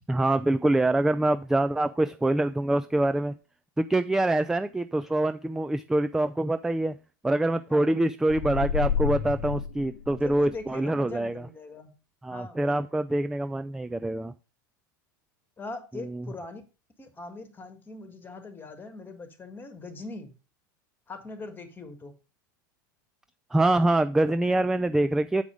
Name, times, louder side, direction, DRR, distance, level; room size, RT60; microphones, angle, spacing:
voice 1, 0.1-3.3 3.8-6.9 7.2-11.5 12.2-14.3 15.9-16.3 23.5-25.4, right 1 dB, 5° right, 12 dB, 0.4 m, -25 dB
sound 1, 8.3-10.7, left 8 dB, 55° left, 0.8 m, -30 dB
voice 2, 10.1-11.9 12.3-12.8 15.6-16.6 17.0-20.3 21.1-22.1, left 3 dB, 20° left, 9 dB, 1.7 m, -41 dB
7.9 x 4.8 x 5.0 m, 0.32 s
hypercardioid pair, 90°, 11 cm